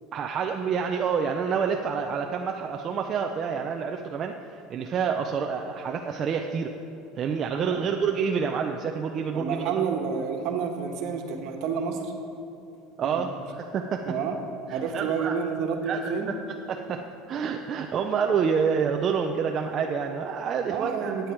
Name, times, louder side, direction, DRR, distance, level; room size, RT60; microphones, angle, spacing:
voice 1, 0.1-4.3 4.7-6.7 7.2-9.7 13.0-14.1 14.7-15.4 15.8-16.4 16.7-21.2, right 6 dB, 30° right, 3 dB, 0.5 m, -28 dB
voice 2, 9.3-12.1 13.0-13.3 14.1-14.4 14.7-16.3 20.7-21.3, right 6 dB, 55° right, 3 dB, 1.4 m, -29 dB
15.5 x 9.1 x 4.6 m, 2.7 s
cardioid pair, 150°, 0 cm